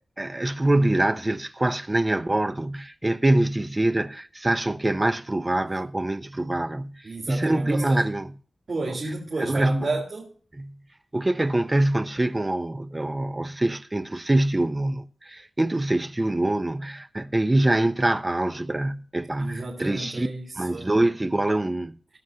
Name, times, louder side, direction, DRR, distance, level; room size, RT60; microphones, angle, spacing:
voice 1, 0.2-7.0 7.3-8.3 9.4-10.0 10.6-10.7 11.1-20.3 20.6-22.0, right 1 dB, 20° right, 0.8 m, -24 dB
voice 2, 7.0-8.0 8.7-10.3 19.4-20.9, right 3 dB, 55° right, 3.8 m, -32 dB
18.0 x 7.7 x 2.8 m
wide cardioid pair, 85°, 0 cm